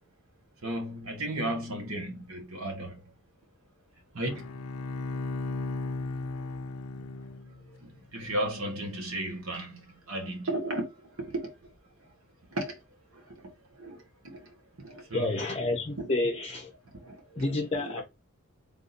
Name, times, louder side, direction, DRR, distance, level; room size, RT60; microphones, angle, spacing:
voice 1, 0.6-3.1 4.1-4.5 5.0-5.2 5.9-6.5 6.9-7.1 7.5-11.7 12.0-12.2 12.5-15.6 16.0-16.1 16.9-18.0, right 1 dB, 75° right, 1.2 m, -36 dB
Bowed string instrument, 4.2-7.8, left 3 dB, 85° left, 0.4 m, -36 dB
voice 2, 15.1-16.7 17.4-18.0, left 2 dB, 30° left, 0.6 m, -29 dB
3.6 x 2.7 x 4.0 m
head